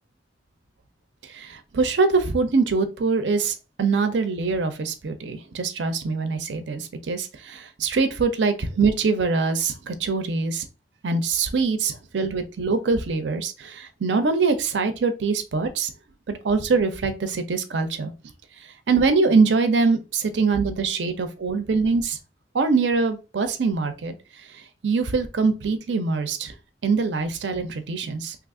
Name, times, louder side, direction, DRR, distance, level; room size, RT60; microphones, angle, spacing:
voice 1, 1.3-10.7 11.0-15.9 16.3-18.1 18.9-22.2 22.5-24.1 24.8-26.5 26.8-28.4, right 4 dB, 85° right, 9 dB, 0.5 m, -23 dB
2.9 x 2.4 x 3.6 m, 0.30 s
head